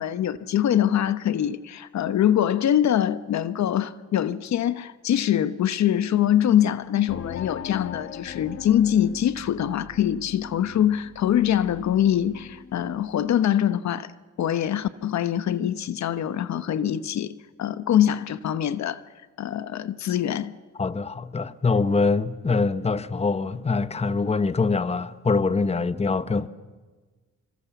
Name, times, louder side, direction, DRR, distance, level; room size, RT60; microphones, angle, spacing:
voice 1, 0.0-14.1 14.4-19.0 19.4-20.5, left 10 dB, 65° left, 1.0 m, -23 dB
sound 1, 7.1-13.4, left 8 dB, 50° left, 1.3 m, -41 dB
voice 2, 20.8-26.5, left 4 dB, 20° left, 1.0 m, -24 dB
25.5 x 25.5 x 7.1 m
cardioid pair, 90°, 30 cm